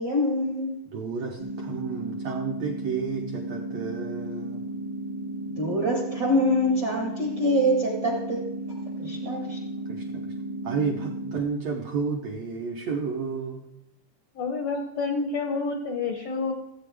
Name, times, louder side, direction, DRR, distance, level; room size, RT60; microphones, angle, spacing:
voice 1, 0.0-0.8 5.6-8.4 9.0-9.6, equal, 60° right, -1 dB, 1.1 m, -25 dB
voice 2, 0.9-4.6 9.9-10.3 10.6-13.6, right 5 dB, 75° right, 2 dB, 1.5 m, -31 dB
sound 1, 1.4-11.4, right 1 dB, 30° right, 0.6 m, -34 dB
voice 3, 14.3-16.5, left 4 dB, 75° left, 4 dB, 1.5 m, -28 dB
14.5 x 8.5 x 3.4 m, 0.90 s
omnidirectional pair, 4.0 m